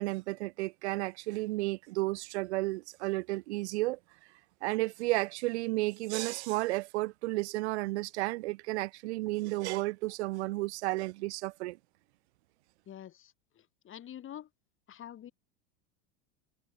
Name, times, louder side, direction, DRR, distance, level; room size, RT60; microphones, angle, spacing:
voice 1, 0.0-4.0 4.6-11.8, right 21 dB, 65° right, 1.0 m, -32 dB
voice 2, 12.9-14.5 14.9-15.3, left 10 dB, 35° left, 5.9 m, -47 dB
hypercardioid pair, 100°, 36 cm